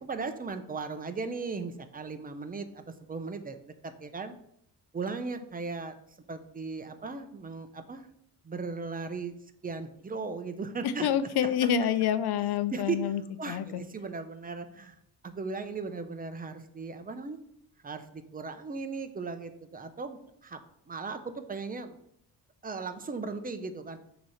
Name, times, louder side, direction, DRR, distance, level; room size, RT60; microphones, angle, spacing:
voice 1, 0.0-4.3 4.9-6.0 6.3-8.1 8.4-9.3 9.6-11.1 11.4-11.7 12.7-13.0 13.4-15.0 15.2-17.4 17.8-20.6 20.9-22.0 22.6-24.0, right 4 dB, 25° right, 8 dB, 0.7 m, -37 dB
voice 2, 10.8-13.2 13.5-13.8, left 9 dB, 85° left, 13 dB, 0.6 m, -27 dB
6.2 x 3.0 x 5.6 m, 0.73 s
cardioid pair, 95°, 38 cm